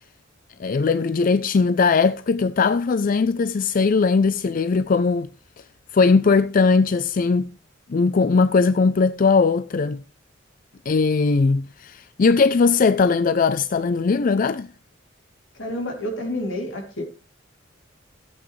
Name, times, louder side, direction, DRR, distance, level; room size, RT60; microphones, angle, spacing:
voice 1, 0.6-5.3 5.9-7.5 7.9-10.0 10.9-14.7, left 4 dB, 45° left, 0.4 m, -19 dB
voice 2, 15.6-17.0, left 1 dB, 85° left, 2.8 m, -29 dB
15.0 x 8.0 x 3.2 m
head